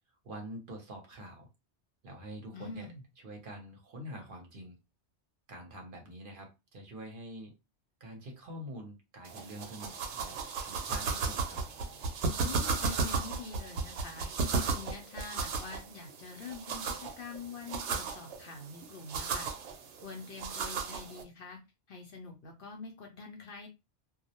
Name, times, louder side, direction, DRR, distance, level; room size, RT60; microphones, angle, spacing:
voice 1, 0.2-1.5 2.0-2.9 3.2-4.8 5.5-7.5 8.0-11.6, equal, 55° right, 1 dB, 0.8 m, -46 dB
voice 2, 2.5-3.0 12.4-14.3 14.7-19.5 20.0-21.6 21.9-23.7, left 4 dB, 60° left, 3 dB, 0.7 m, -45 dB
sound 1, 9.3-21.2, right 4 dB, 80° right, 0.9 m, -35 dB
2.2 x 2.0 x 2.8 m, 0.25 s
omnidirectional pair, 1.2 m